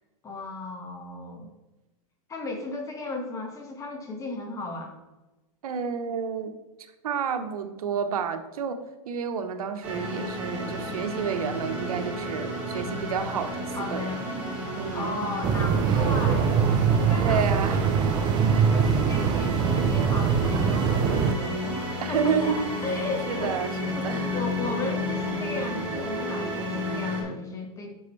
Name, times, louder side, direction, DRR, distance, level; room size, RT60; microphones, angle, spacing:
voice 1, 0.2-1.5 2.3-4.9 13.7-14.3 14.9-16.6 16.9-18.0 18.5-22.6 22.8-23.5 23.9-27.9, left 2 dB, 15° left, 3 dB, 1.5 m, -35 dB
voice 2, 5.6-6.5 7.0-8.8 9.1-14.2 14.8-15.2 17.2-17.8 22.0-22.7 23.3-24.4, right 7 dB, 90° right, 8 dB, 1.1 m, -30 dB
sound 1, 9.8-27.2, left 1 dB, 10° right, 2.9 m, -32 dB
sound 2, 15.4-21.3, right 6 dB, 25° right, 0.4 m, -23 dB
9.7 x 6.4 x 3.2 m, 1.1 s
supercardioid pair, 145°, 18 cm